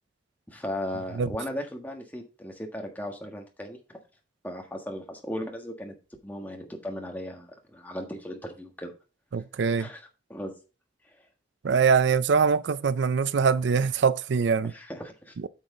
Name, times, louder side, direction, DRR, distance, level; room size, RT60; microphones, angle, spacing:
voice 1, 0.5-4.0 4.4-5.9 6.2-8.9 9.7-10.5 14.6-15.3, left 1 dB, 10° left, 1.5 m, -37 dB
voice 2, 9.3-9.9 11.6-14.7, right 5 dB, 80° right, 0.4 m, -23 dB
8.9 x 6.1 x 3.7 m
head